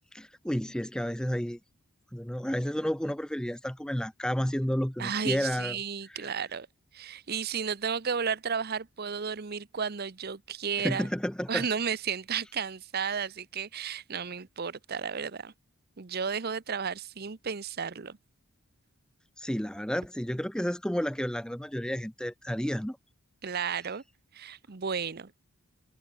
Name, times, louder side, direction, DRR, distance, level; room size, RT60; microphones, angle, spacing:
voice 1, 0.1-1.6 2.1-5.8 6.1-6.3 10.8-11.7 19.4-23.0, equal, 5° left, 0.6 m, -31 dB
voice 2, 5.0-6.7 6.9-11.1 11.5-15.5 16.0-18.2 23.4-24.0 24.3-25.3, right 6 dB, 45° right, 0.7 m, -33 dB
head